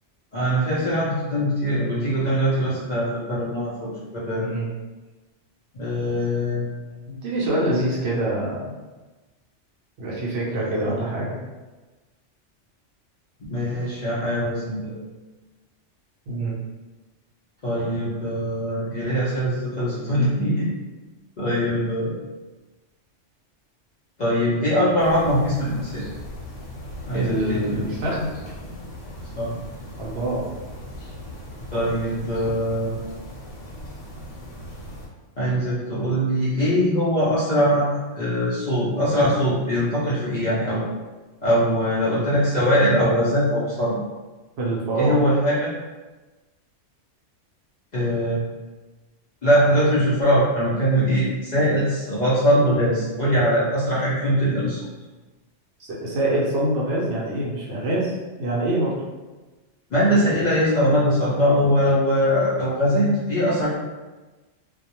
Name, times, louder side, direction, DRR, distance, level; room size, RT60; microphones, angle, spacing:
voice 1, 0.3-4.5 5.7-6.7 13.5-14.9 17.6-20.7 21.4-22.1 24.2-26.0 27.1-27.8 29.4-29.5 31.7-32.9 35.4-37.9 38.1-40.8 41.4-43.9 45.0-45.7 47.9-48.4 49.4-54.8 59.9-63.7, equal, 50° left, -9 dB, 0.6 m, -21 dB
voice 2, 4.4-4.7 7.1-8.8 10.0-11.4 16.3-16.5 27.1-28.3 30.0-30.4 44.6-45.1 55.8-58.1 58.4-58.9, right 1 dB, 65° right, -4 dB, 0.8 m, -25 dB
sound 1, 25.0-35.1, equal, 85° left, 1.1 m, -38 dB
2.3 x 2.1 x 2.8 m, 1.2 s
omnidirectional pair, 1.2 m